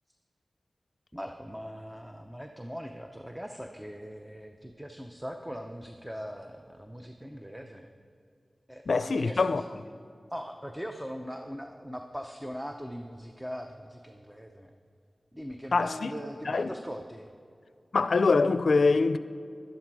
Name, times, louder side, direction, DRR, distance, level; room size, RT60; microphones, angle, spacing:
voice 1, 1.1-7.9 8.7-9.7 10.3-14.7 15.3-17.3, equal, 5° right, 0.7 m, -40 dB
voice 2, 8.9-9.6 15.7-16.1 16.5-16.7 17.9-19.2, left 4 dB, 80° left, 0.4 m, -24 dB
11.5 x 11.5 x 4.8 m
wide cardioid pair, 70°, 0 cm